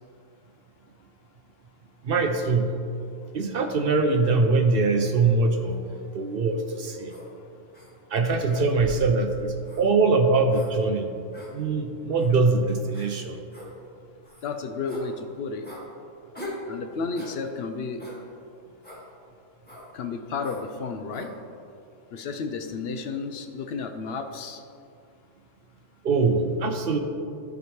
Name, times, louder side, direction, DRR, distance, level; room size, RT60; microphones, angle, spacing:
voice 1, 2.0-2.7 3.3-5.9 6.1-7.1 8.1-11.1 11.5-13.4 26.0-27.0, right 3 dB, 60° right, 5 dB, 0.6 m, -23 dB
sound 1, 7.1-7.3 7.7-7.9 8.5-9.1 9.6-9.8 10.5-10.7 11.3-11.5 12.2-12.3 12.9-13.1 13.5-13.7 14.2-14.5 14.9-15.1 15.6-15.8 16.3-16.6 17.1-17.4 18.0-18.2 18.8-19.0 19.6-19.9 20.4-20.7 21.1-21.3, left 1 dB, 5° left, 1.5 m, -41 dB
voice 2, 14.4-15.7 16.7-18.0 19.9-21.3 22.1-24.6, left 4 dB, 60° left, 6 dB, 0.7 m, -32 dB
13.0 x 5.1 x 3.1 m, 2.5 s
omnidirectional pair, 1.4 m